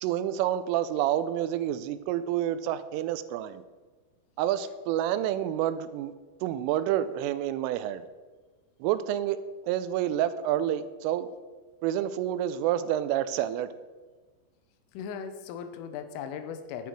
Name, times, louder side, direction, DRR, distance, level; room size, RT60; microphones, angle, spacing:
voice 1, 0.0-3.6 4.4-6.1 6.4-8.0 8.8-11.3 11.8-13.7, right 11 dB, 85° right, 13 dB, 3.0 m, -28 dB
voice 2, 14.9-16.9, left 7 dB, 85° left, 9 dB, 3.4 m, -38 dB
11.0 x 9.3 x 4.5 m, 1.4 s
omnidirectional pair, 5.8 m